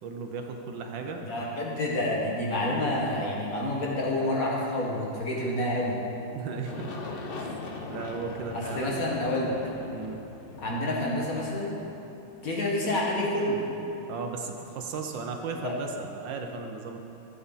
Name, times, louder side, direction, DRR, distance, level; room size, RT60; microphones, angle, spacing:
voice 1, 0.0-1.2 6.3-6.9 7.9-9.0 9.9-10.2 14.1-17.0, right 4 dB, 70° right, 4 dB, 1.4 m, -35 dB
voice 2, 1.1-6.0 8.5-9.5 10.6-11.7 12.4-13.6 15.6-15.8, left 1 dB, 45° left, -3 dB, 1.8 m, -28 dB
Aircraft, 6.7-13.4, left 3 dB, 85° left, 0.5 m, -41 dB
13.5 x 8.5 x 4.0 m, 2.9 s
omnidirectional pair, 2.2 m